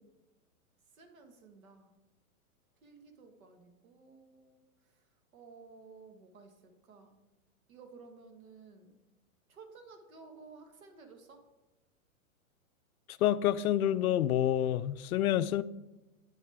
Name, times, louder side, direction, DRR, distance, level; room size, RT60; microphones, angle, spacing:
voice 1, 0.9-1.9 2.8-4.6 5.3-7.2 7.7-9.0 9.5-11.4, right 4 dB, 70° right, 5 dB, 1.7 m, -54 dB
voice 2, 13.2-15.6, left 11 dB, 75° left, 15 dB, 0.5 m, -28 dB
8.9 x 6.5 x 3.5 m, 1.0 s
hypercardioid pair, 175°, 43 cm